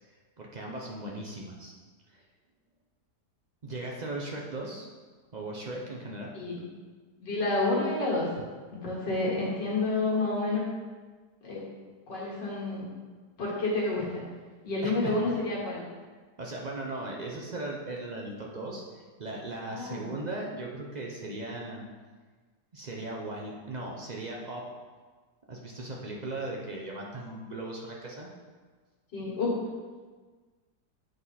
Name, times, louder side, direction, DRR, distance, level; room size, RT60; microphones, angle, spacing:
voice 1, 0.4-1.7 2.1-2.2 3.6-4.9 5.3-6.3 14.8-15.3 16.4-21.8 22.7-24.7 25.5-28.3, right 2 dB, 60° right, -2 dB, 0.4 m, -38 dB
voice 2, 7.2-8.3 8.7-10.6 11.4-11.6 12.1-12.9 13.4-14.2 14.6-15.8 19.7-20.1 29.1-29.6, left 2 dB, 90° left, -5 dB, 2.5 m, -29 dB
7.8 x 4.8 x 4.1 m, 1.4 s
omnidirectional pair, 1.8 m